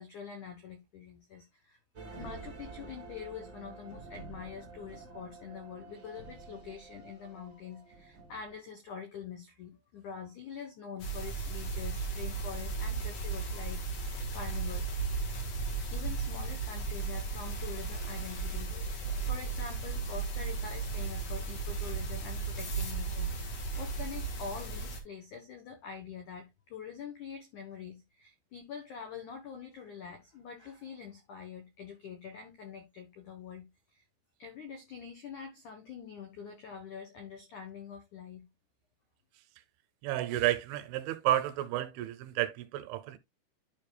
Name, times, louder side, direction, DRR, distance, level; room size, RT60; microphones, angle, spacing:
voice 1, 0.0-1.8 2.2-14.9 15.9-33.7 33.9-34.0 34.4-38.5, left 6 dB, 90° left, 1.7 m, -45 dB
sound 1, 1.9-8.6, right 4 dB, 65° right, 0.8 m, -49 dB
sound 2, 11.0-25.0, right 4 dB, 70° left, 1.6 m, -35 dB
voice 2, 40.0-43.2, right 13 dB, 85° right, 3.0 m, -31 dB
12.0 x 5.4 x 2.3 m
omnidirectional pair, 5.5 m